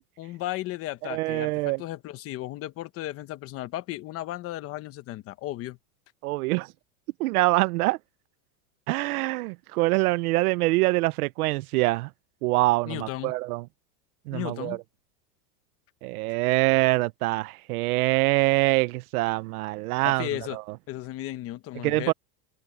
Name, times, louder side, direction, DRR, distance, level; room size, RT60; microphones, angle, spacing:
voice 1, 0.2-5.8 12.8-13.3 14.3-14.8 20.0-20.6 20.9-22.1, left 15 dB, 30° left, 1.1 m, -35 dB
voice 2, 1.1-1.8 6.2-6.7 7.2-8.0 8.9-12.1 12.4-13.6 14.3-14.8 16.0-20.6 21.8-22.1, right 21 dB, 75° right, 0.7 m, -24 dB
supercardioid pair, 165°, 44 cm